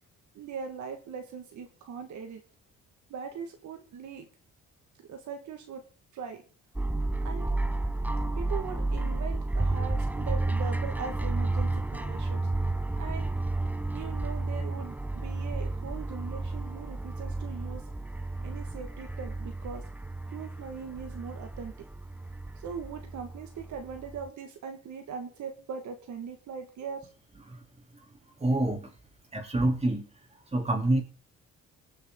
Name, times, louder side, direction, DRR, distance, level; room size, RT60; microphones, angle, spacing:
voice 1, 0.3-2.4 3.1-4.3 5.1-5.8 6.1-6.4 7.2-7.5 8.3-12.4 12.9-13.3 13.9-17.8 18.4-19.8 20.3-21.7 22.6-27.1, right 6 dB, 70° right, 4 dB, 2.0 m, -40 dB
sound 1, 6.8-24.3, right 2 dB, 5° right, 0.7 m, -32 dB
voice 2, 28.4-28.9 29.3-30.1 30.5-31.0, right 2 dB, 20° right, 2 dB, 3.5 m, -27 dB
19.5 x 7.1 x 3.9 m, 0.39 s
cardioid pair, 90°, 30 cm